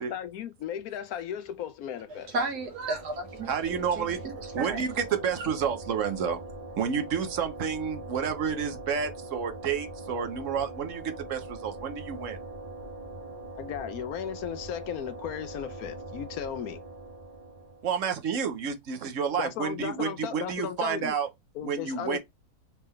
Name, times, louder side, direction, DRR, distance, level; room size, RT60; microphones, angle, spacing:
voice 1, 0.0-2.3 13.6-16.8 19.4-21.1 21.5-22.2, left 9 dB, 75° left, 1.1 m, -35 dB
sound 1, 2.2-18.0, right 2 dB, 25° right, 1.6 m, -42 dB
voice 2, 2.3-4.8, right 2 dB, 80° right, 1.9 m, -34 dB
voice 3, 3.5-4.2 4.5-6.4 6.8-12.4 17.8-21.3 21.6-22.2, right 7 dB, 60° right, 1.1 m, -30 dB
4.4 x 3.7 x 3.1 m
omnidirectional pair, 1.6 m